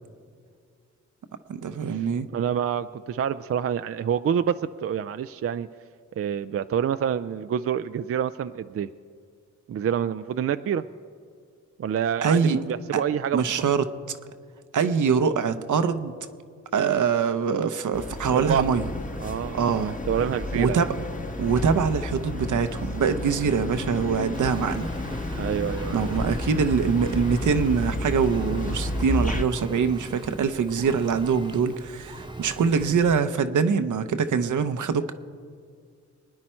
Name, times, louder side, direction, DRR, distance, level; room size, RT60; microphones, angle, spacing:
voice 1, 1.5-2.3 12.2-12.6 12.9-13.0 13.3-13.8 14.7-16.1 16.7-18.9 19.5-20.0 20.6-20.9 21.4-24.9 25.3-25.5 25.9-35.1, right 6 dB, 75° right, 10 dB, 0.8 m, -24 dB
voice 2, 2.3-4.5 4.8-5.7 6.2-8.9 9.7-10.8 11.8-13.4 18.3-18.7 19.2-20.9 25.4-26.3, right 8 dB, 50° right, 12 dB, 0.4 m, -27 dB
sound 1, 17.9-29.4, left 2 dB, 25° left, 1.2 m, -31 dB
Engine, 24.3-33.2, right 1 dB, 15° right, 1.0 m, -41 dB
23.0 x 9.7 x 4.4 m, 2.2 s
cardioid pair, 65°, 31 cm